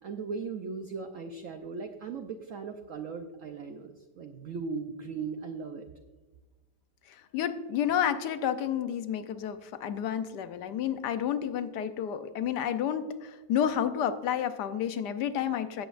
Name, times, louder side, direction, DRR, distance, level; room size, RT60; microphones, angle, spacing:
voice 1, 0.0-5.8, right 5 dB, 60° right, 5 dB, 0.9 m, -38 dB
voice 2, 7.3-15.9, left 9 dB, 70° left, 10 dB, 1.3 m, -30 dB
17.0 x 8.4 x 2.5 m, 1.3 s
omnidirectional pair, 1.9 m